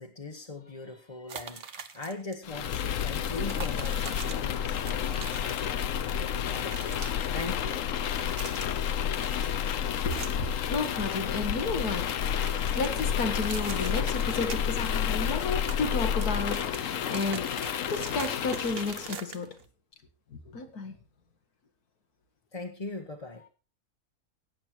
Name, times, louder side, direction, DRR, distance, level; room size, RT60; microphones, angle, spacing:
voice 1, 0.0-8.2 22.5-23.5, left 2 dB, 25° left, 1.1 m, -41 dB
sound 1, 1.3-2.3 2.6-2.8 3.2-6.0 6.2-7.3 8.0-8.9 9.2-10.5 10.8-11.9 12.2-15.0 15.3-19.6, right 6 dB, 45° right, 1.1 m, -43 dB
sound 2, 2.4-19.2, left 9 dB, 65° left, 1.1 m, -30 dB
voice 2, 10.1-12.2 12.7-19.5 20.3-21.0, left 3 dB, 85° left, 2.3 m, -32 dB
14.0 x 9.0 x 4.6 m
omnidirectional pair, 1.6 m